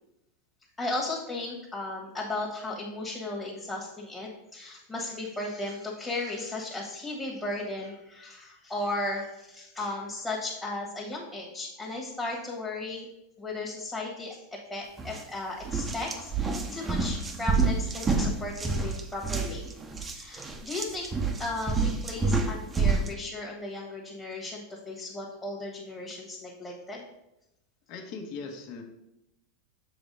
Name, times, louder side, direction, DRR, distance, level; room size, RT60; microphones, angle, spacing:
voice 1, 0.8-13.1 13.4-14.4 14.7-19.7 20.1-21.1 21.4-27.0, left 2 dB, 10° left, -4 dB, 1.5 m, -35 dB
sound 1, 15.0-15.2 15.6-23.1, right 4 dB, 20° right, 0.8 m, -28 dB
voice 2, 27.9-28.8, left 4 dB, 55° left, 3 dB, 1.3 m, -39 dB
7.0 x 3.3 x 5.4 m, 0.87 s
supercardioid pair, 120°, 0 cm